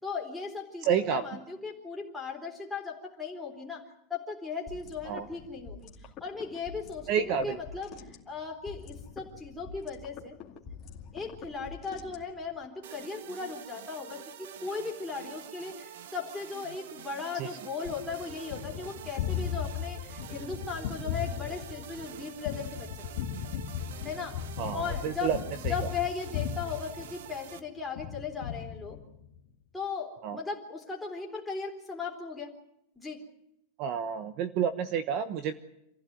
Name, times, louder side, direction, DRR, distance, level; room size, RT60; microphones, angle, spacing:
voice 1, 0.0-10.4 11.1-23.2 24.0-24.4 24.7-25.3 25.7-29.0 29.7-32.5 33.0-33.2, left 5 dB, 5° left, -2 dB, 3.8 m, -37 dB
voice 2, 0.8-1.2 5.0-5.3 7.1-7.6 17.3-17.5 24.6-25.4 25.6-25.9 30.2-30.4 33.8-35.5, right 8 dB, 35° right, 11 dB, 1.1 m, -29 dB
sound 1, 4.7-12.6, left 6 dB, 25° left, 2.5 m, -47 dB
sound 2, 12.8-27.6, right 9 dB, 65° right, 1.7 m, -47 dB
Gunshot gunfire, 17.9-27.5 28.0-29.4, left 9 dB, 55° left, 2.5 m, -37 dB
27.5 x 15.5 x 9.4 m, 0.83 s
supercardioid pair, 180°, 0 cm